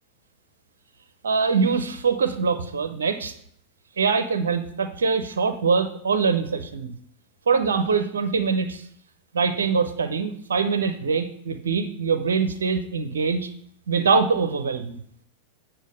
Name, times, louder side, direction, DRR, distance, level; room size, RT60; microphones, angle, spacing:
voice 1, 1.2-3.3 4.0-6.9 7.5-8.8 9.3-13.5 13.9-15.0, right 5 dB, 65° right, 9 dB, 0.7 m, -23 dB
8.2 x 4.6 x 6.1 m, 0.67 s
figure-of-eight pair, 90°, 0 cm